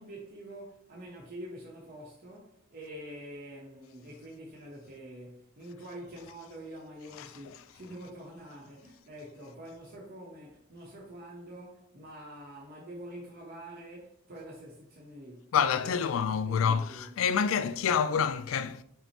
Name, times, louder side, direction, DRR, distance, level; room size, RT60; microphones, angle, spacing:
voice 1, 0.0-17.1 17.8-17.9, right 1 dB, 50° right, 0.8 m, -46 dB
voice 2, 15.5-18.8, left 7 dB, 80° left, 0.3 m, -27 dB
5.5 x 2.1 x 4.3 m
head